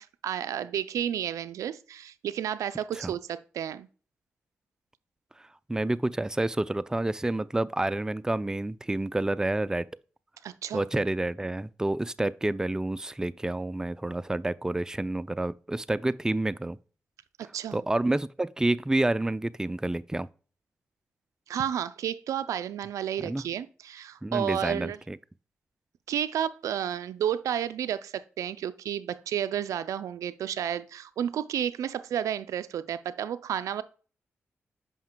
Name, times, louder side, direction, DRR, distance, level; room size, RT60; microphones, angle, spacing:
voice 1, 0.0-3.9 10.4-10.8 17.5-17.8 21.5-25.0 26.1-33.8, right 9 dB, 80° right, 0.4 m, -31 dB
voice 2, 5.4-9.9 10.7-16.8 17.7-20.3 23.2-23.4 24.2-25.2, right 2 dB, 10° right, 0.3 m, -29 dB
9.2 x 5.6 x 2.2 m
supercardioid pair, 45°, 5 cm